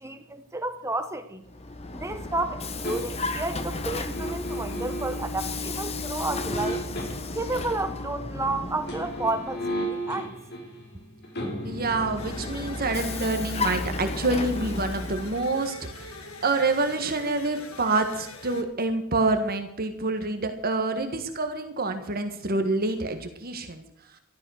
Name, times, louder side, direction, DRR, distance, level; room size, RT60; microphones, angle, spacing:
voice 1, 0.0-1.4 1.9-6.8 7.3-10.3, right 2 dB, 15° right, 9 dB, 0.9 m, -31 dB
Vehicle, 1.4-10.0 11.6-15.5, left 2 dB, 30° left, 1.1 m, -34 dB
sound 1, 2.8-3.4 4.1-5.3 6.3-7.5 8.7-19.7 20.0-20.1, equal, 50° left, 4.5 m, -37 dB
voice 2, 11.6-16.2 16.4-23.8, right 3 dB, 45° right, 7 dB, 1.6 m, -27 dB
sound 2, 12.2-18.6, left 3 dB, 85° left, 2.4 m, -43 dB
13.0 x 12.5 x 6.5 m, 0.80 s
head